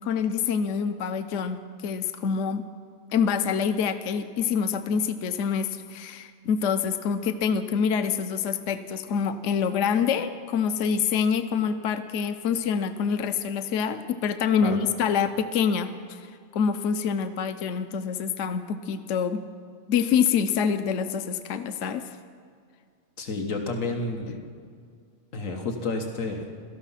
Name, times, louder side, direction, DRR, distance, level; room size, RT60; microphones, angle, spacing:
voice 1, 0.0-2.6 3.1-19.4 19.9-22.2, left 7 dB, 75° left, 9 dB, 1.0 m, -26 dB
voice 2, 23.2-24.4 25.3-26.5, left 3 dB, 90° left, 3 dB, 1.7 m, -30 dB
18.0 x 13.5 x 5.7 m, 2.2 s
omnidirectional pair, 1.3 m